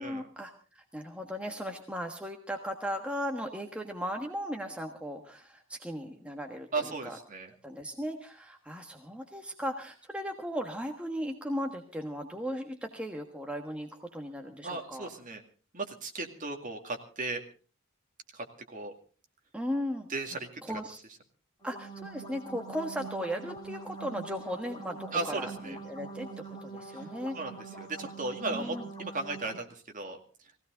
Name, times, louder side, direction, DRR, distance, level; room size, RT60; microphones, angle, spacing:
voice 1, 0.0-7.2 7.6-15.1 19.5-20.1 20.6-21.0 21.6-27.4 28.5-28.9, equal, 5° right, 3 dB, 1.4 m, -37 dB
voice 2, 6.7-7.5 14.6-15.4 15.7-17.4 18.3-18.9 20.1-20.6 25.1-25.8 26.9-27.0 27.3-30.2, right 3 dB, 40° right, 4 dB, 2.2 m, -36 dB
sound 1, 21.6-29.6, right 3 dB, 20° left, 3.3 m, -44 dB
19.5 x 16.5 x 3.9 m, 0.38 s
head